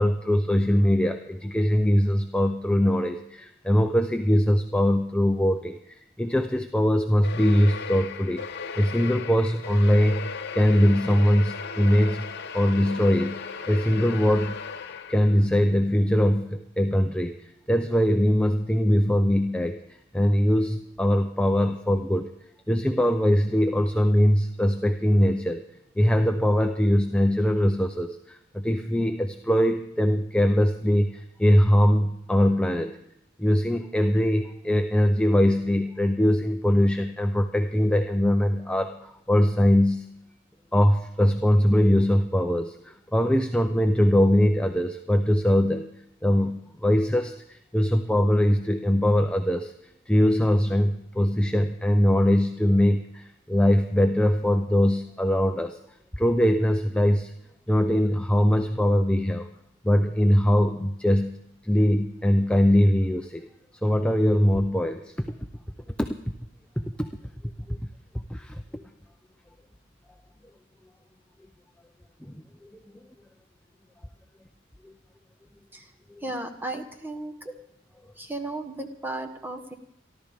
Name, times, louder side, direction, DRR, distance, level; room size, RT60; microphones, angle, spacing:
voice 1, 0.0-12.3 12.5-14.6 15.1-19.8 20.1-22.3 22.7-25.6 26.0-33.0 33.4-40.1 40.7-45.9 46.2-49.7 50.1-55.8 56.2-57.3 57.7-59.5 59.8-61.4 61.6-63.5 63.8-65.3 66.0-66.3 66.8-67.1 67.7-67.8 68.3-68.8 72.2-72.3 74.8-74.9, equal, 5° left, 5 dB, 0.5 m, -22 dB
sound 1, 7.2-15.5, left 5 dB, 60° left, 0.9 m, -36 dB
voice 2, 76.2-77.5 78.2-79.7, right 2 dB, 10° right, 3 dB, 1.3 m, -35 dB
27.5 x 12.0 x 3.6 m, 0.78 s
head